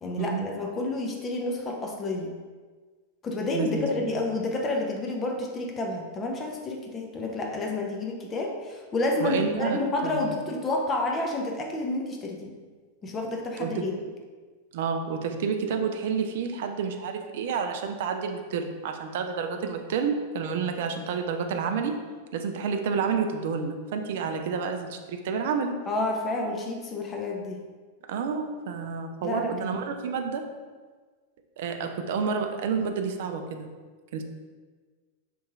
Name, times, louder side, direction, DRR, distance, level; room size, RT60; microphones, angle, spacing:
voice 1, 0.0-2.3 3.2-12.5 13.0-13.9 25.9-27.6 29.2-29.8, left 2 dB, 25° left, 1 dB, 0.5 m, -30 dB
voice 2, 3.5-3.9 9.2-10.2 13.6-13.9 14.7-21.9 22.3-25.8 28.1-30.4 31.6-33.7 34.1-34.2, right 5 dB, 55° right, 5 dB, 0.3 m, -29 dB
3.0 x 2.6 x 3.5 m, 1.5 s
figure-of-eight pair, 90°, 0 cm